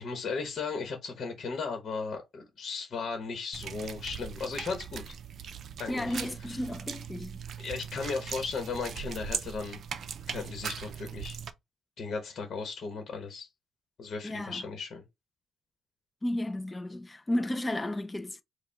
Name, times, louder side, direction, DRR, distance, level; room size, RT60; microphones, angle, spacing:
voice 1, 0.0-5.2 5.8-6.1 6.5-6.6 7.6-9.8 10.3-11.4 12.0-13.5 14.0-15.0, left 4 dB, 45° left, 1.2 m, -36 dB
sound 1, 3.5-11.5, right 7 dB, 50° right, 0.5 m, -40 dB
voice 2, 5.9-7.4 14.2-14.6 16.2-18.4, left 1 dB, 10° left, 0.4 m, -33 dB
4.9 x 2.2 x 3.4 m
cardioid pair, 145°, 0 cm